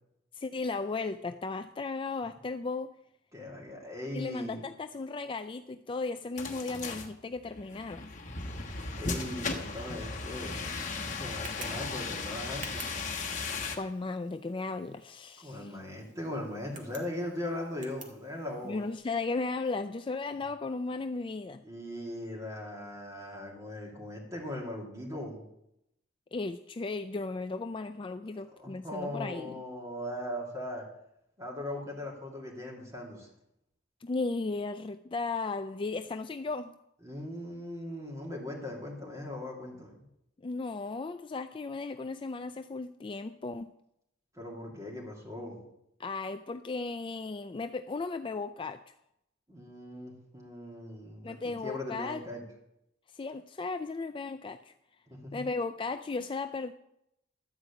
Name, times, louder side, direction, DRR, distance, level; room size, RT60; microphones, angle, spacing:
voice 1, 0.3-2.9 4.1-8.1 13.8-15.8 18.6-21.6 26.3-29.6 34.0-36.7 40.4-43.7 46.0-48.8 51.2-52.2 53.1-54.7 55.3-56.7, left 3 dB, 25° left, 0.4 m, -35 dB
voice 2, 3.3-4.6 8.9-12.9 15.4-18.8 21.6-25.4 28.5-30.8 31.4-33.3 37.0-40.0 44.3-45.6 49.5-52.4 55.1-55.4, left 1 dB, 15° right, 3.0 m, -39 dB
sound 1, 6.4-13.8, left 3 dB, 40° left, 1.3 m, -36 dB
Tick, 9.8-18.9, right 3 dB, 40° right, 1.9 m, -52 dB
12.5 x 5.0 x 8.4 m
head